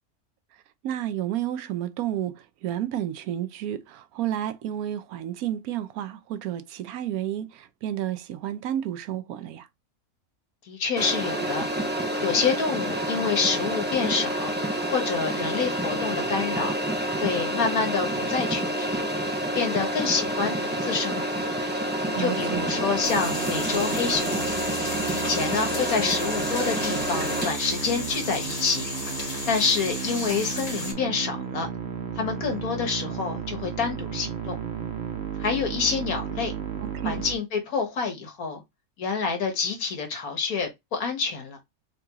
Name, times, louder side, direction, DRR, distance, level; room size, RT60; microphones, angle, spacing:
voice 1, 0.8-9.7 22.1-22.6 36.8-37.2, right 11 dB, 85° right, 1.1 m, -31 dB
voice 2, 10.7-14.5 14.9-16.7 17.2-19.0 19.5-21.5 22.2-24.5 25.1-28.9 29.5-31.7 32.2-34.6 35.4-36.5 37.0-38.6 39.0-41.6, left 5 dB, 80° left, 1.7 m, -27 dB
sound 1, 11.0-27.5, right 1 dB, 10° right, 0.5 m, -28 dB
Musical instrument, 22.5-37.3, right 6 dB, 50° right, 1.1 m, -34 dB
sound 2, 23.0-30.9, left 1 dB, 25° left, 1.8 m, -35 dB
3.7 x 3.5 x 2.9 m
omnidirectional pair, 1.5 m